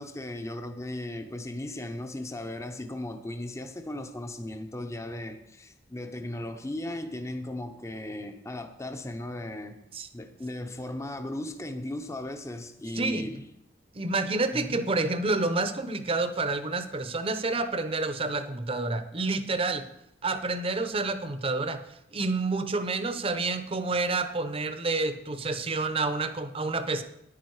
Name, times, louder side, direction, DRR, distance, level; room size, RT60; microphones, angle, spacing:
voice 1, 0.0-9.8 10.1-13.5 14.5-14.9, left 1 dB, 15° left, 0.7 m, -36 dB
voice 2, 13.0-13.3 13.9-19.8 20.2-21.8 22.1-27.0, right 3 dB, 30° right, 0.7 m, -29 dB
9.9 x 9.7 x 4.7 m
head